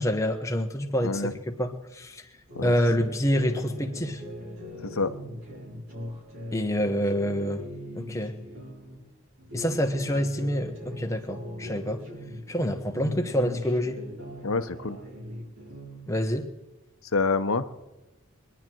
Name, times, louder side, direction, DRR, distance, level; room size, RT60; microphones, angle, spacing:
voice 1, 0.0-2.2 2.6-4.2 6.5-7.6 7.9-8.4 9.5-12.0 12.5-14.0 16.1-16.5, equal, 15° left, 4 dB, 1.1 m, -27 dB
voice 2, 1.0-1.3 2.6-2.7 4.9-5.1 14.4-15.0 17.1-17.6, left 3 dB, 80° left, 11 dB, 0.9 m, -26 dB
sound 1, 2.5-9.0 9.4-12.7 12.9-16.1, equal, 80° right, 4.6 m, -39 dB
24.0 x 10.5 x 4.6 m, 1.1 s
head